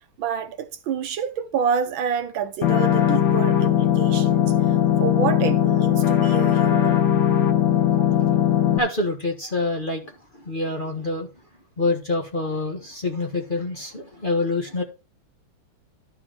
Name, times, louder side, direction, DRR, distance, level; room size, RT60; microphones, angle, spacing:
voice 1, 0.2-7.1 8.0-8.1, right 7 dB, 70° right, 1.4 m, -28 dB
sound 1, 2.6-8.8, left 10 dB, 55° left, 1.6 m, -19 dB
voice 2, 8.8-11.3 11.8-14.8, left 2 dB, 25° left, 1.4 m, -26 dB
12.0 x 4.9 x 4.9 m
omnidirectional pair, 2.4 m